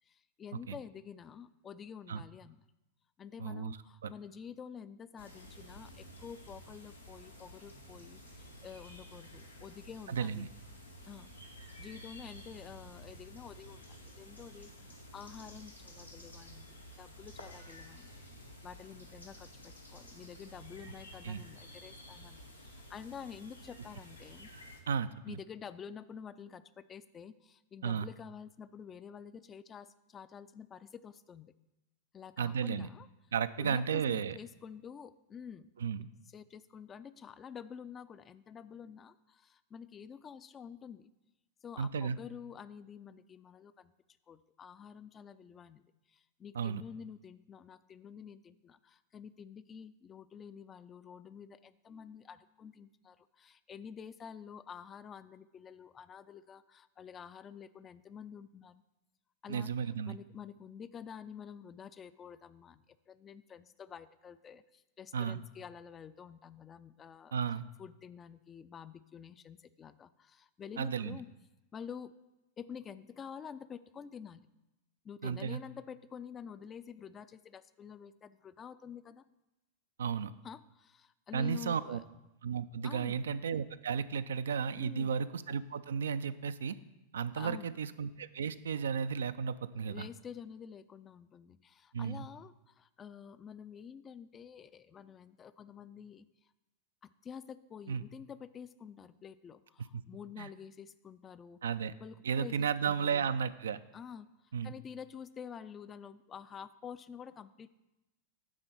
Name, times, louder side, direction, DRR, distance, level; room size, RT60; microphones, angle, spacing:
voice 1, 0.1-2.6 3.2-10.5 11.1-11.3 11.6-18.1 18.6-24.5 25.2-31.5 32.1-33.1 33.6-35.7 36.3-41.1 41.6-43.9 44.3-58.8 59.4-67.3 67.8-71.3 71.7-72.1 72.6-74.5 75.0-79.2 80.4-82.0 82.8-83.3 84.7-85.1 87.3-87.8 89.7-96.5 97.0-101.6 102.0-103.3 103.9-107.7, left 7 dB, 25° left, 14 dB, 0.3 m, -49 dB
voice 2, 3.4-3.8 4.0-4.1 10.1-10.5 21.2-21.4 24.9-25.4 27.8-28.1 32.4-32.9 33.3-34.4 35.8-36.1 41.8-42.2 46.6-46.8 59.5-60.2 65.1-65.4 67.3-67.7 70.8-71.2 75.2-75.6 80.0-80.3 81.3-82.0 82.4-86.8 87.1-90.1 91.9-92.2 97.9-98.0 99.9-100.0 100.4-100.5 101.6-101.9 102.2-103.8 104.5-104.7, right 7 dB, 65° right, 13 dB, 0.3 m, -34 dB
sound 1, 5.2-24.8, equal, 85° left, 1.1 m, -52 dB
9.6 x 3.7 x 6.7 m, 0.97 s
figure-of-eight pair, 90°, 0 cm